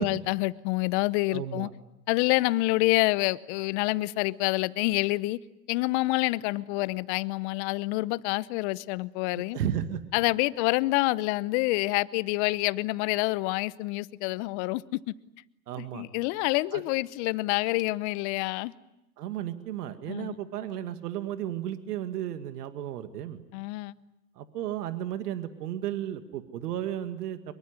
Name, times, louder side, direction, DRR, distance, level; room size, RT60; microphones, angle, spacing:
voice 1, 0.0-1.7 2.1-5.4 5.7-9.6 10.1-15.1 15.8-18.7 20.1-20.4 23.5-23.9, left 21 dB, 45° left, 0.9 m, -27 dB
voice 2, 1.3-1.7 9.4-10.0 15.7-16.0 16.7-16.8 19.2-23.4 24.4-27.5, right 11 dB, 65° right, 2.1 m, -34 dB
24.5 x 23.0 x 9.7 m
hypercardioid pair, 110°, 50 cm